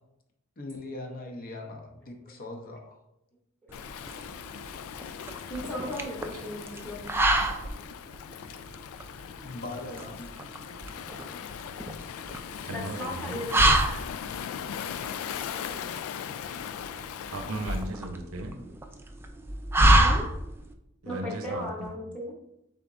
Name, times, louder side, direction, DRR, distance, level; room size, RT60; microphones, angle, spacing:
voice 1, 0.6-3.0 9.4-10.4, left 2 dB, 45° left, 2 dB, 0.7 m, -40 dB
Waves surf, 3.7-17.9, left 8 dB, 90° left, 0.3 m, -39 dB
sound 1, 3.7-20.7, right 1 dB, 10° right, 0.3 m, -28 dB
voice 2, 5.5-7.1 11.2-11.4 12.6-13.7 19.9-20.3 21.1-22.4, equal, 5° left, -3 dB, 0.8 m, -37 dB
voice 3, 12.6-13.4 15.5-16.1 17.3-18.5 21.0-21.9, right 2 dB, 85° right, 4 dB, 0.7 m, -37 dB
3.9 x 3.5 x 3.7 m, 0.83 s
head